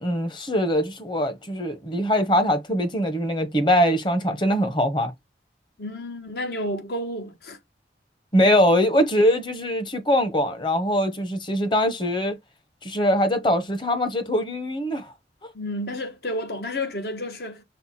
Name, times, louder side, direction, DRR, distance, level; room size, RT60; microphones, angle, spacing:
voice 1, 0.0-5.1 8.3-12.4 12.8-15.1 15.4-15.5, equal, 25° left, 0.9 m, -22 dB
voice 2, 5.8-7.6 15.5-17.6, left 1 dB, 65° left, 1.1 m, -31 dB
5.6 x 2.2 x 4.2 m
head